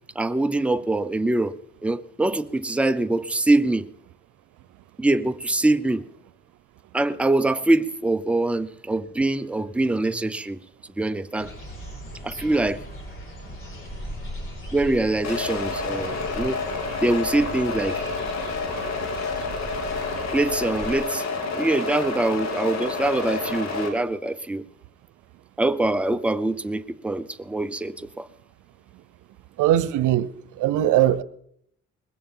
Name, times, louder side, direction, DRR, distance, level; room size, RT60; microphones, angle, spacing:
voice 1, 0.2-1.5 1.8-3.9 5.0-6.0 6.9-10.6 11.0-11.5 12.2-12.8 14.7-16.6 17.0-18.0 20.3-21.2 21.5-24.7 25.6-28.3, right 2 dB, 5° right, 0.6 m, -24 dB
sound 1, 11.4-21.0, equal, 45° left, 5.7 m, -38 dB
sound 2, 15.2-23.9, left 4 dB, 60° left, 2.8 m, -29 dB
voice 2, 29.6-31.2, right 12 dB, 90° right, 0.7 m, -21 dB
20.5 x 16.0 x 3.9 m
cardioid pair, 90°, 30 cm